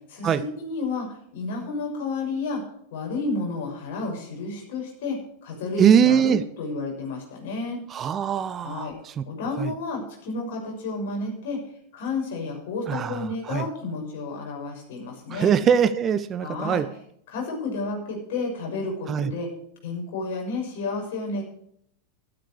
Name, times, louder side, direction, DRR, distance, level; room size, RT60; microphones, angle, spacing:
voice 1, 0.1-2.6 2.9-7.8 8.6-8.9 9.3-11.6 11.9-15.5 16.4-16.8 17.3-19.5 19.8-21.4, left 3 dB, 55° left, 1 dB, 6.3 m, -31 dB
voice 2, 5.8-6.4 7.9-8.9 9.2-9.3 9.6-9.7 12.9-13.2 13.5-13.6 15.3-16.9 19.1-19.3, right 8 dB, 25° right, 14 dB, 0.7 m, -21 dB
13.5 x 12.5 x 4.7 m, 0.69 s
figure-of-eight pair, 90°, 0 cm